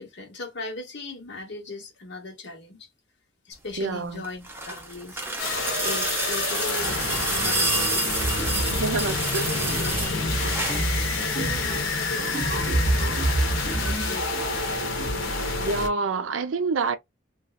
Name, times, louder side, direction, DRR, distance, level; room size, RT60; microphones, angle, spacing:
voice 1, 0.0-2.9 3.4-8.1 8.4-13.1 13.5-14.9, left 3 dB, 60° left, 1.2 m, -39 dB
voice 2, 3.8-4.2 8.7-9.5 15.6-17.0, right 4 dB, 90° right, 0.6 m, -27 dB
sound 1, 4.1-10.9 12.2-12.3, right 2 dB, 10° right, 0.7 m, -29 dB
sound 2, 5.4-15.9, left 3 dB, 85° left, 0.9 m, -28 dB
sound 3, 8.2-15.2, right 2 dB, 35° right, 1.0 m, -29 dB
3.1 x 2.3 x 2.3 m
head